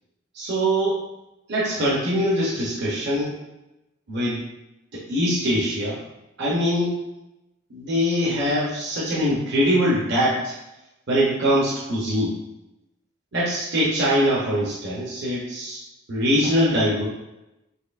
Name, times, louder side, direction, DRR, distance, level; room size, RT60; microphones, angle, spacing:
voice 1, 0.3-1.0 1.5-3.4 4.1-4.4 4.9-6.0 6.4-6.9 7.7-10.6 11.1-12.4 13.3-15.8 16.1-17.1, equal, 50° right, -6 dB, 0.7 m, -22 dB
4.2 x 3.0 x 2.4 m, 0.93 s
head